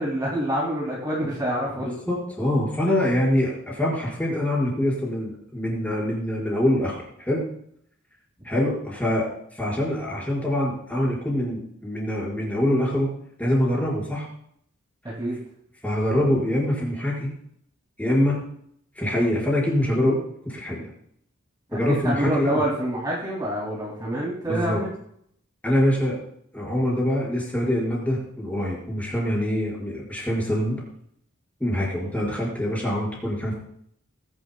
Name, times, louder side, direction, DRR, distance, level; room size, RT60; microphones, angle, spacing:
voice 1, 0.0-1.9 15.2-15.4 21.7-21.8 22.0-24.9, right 1 dB, 20° right, -5 dB, 2.6 m, -26 dB
voice 2, 1.8-7.4 8.5-13.1 13.4-14.3 15.8-17.3 18.0-18.4 19.0-20.2 20.5-20.9 21.7-22.6 24.5-24.8 25.6-26.2 26.5-30.8 31.6-33.5, left 1 dB, 5° left, -5 dB, 5.1 m, -24 dB
21.0 x 11.0 x 2.3 m, 0.68 s
head